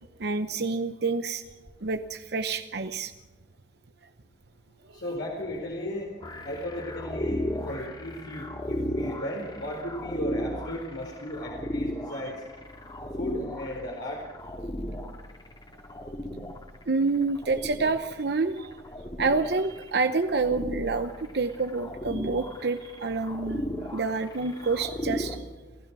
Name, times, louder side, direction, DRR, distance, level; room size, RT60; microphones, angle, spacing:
voice 1, 0.2-1.4 1.8-3.1 16.9-18.8 19.2-23.6 23.9-25.4, right 4 dB, 65° right, 9 dB, 0.8 m, -28 dB
voice 2, 4.9-6.1 6.4-12.3 13.2-14.2, left 1 dB, 70° left, -2 dB, 4.6 m, -35 dB
sound 1, 6.2-25.4, left 1 dB, 25° left, 2.2 m, -36 dB
28.0 x 16.0 x 6.2 m, 1.2 s
head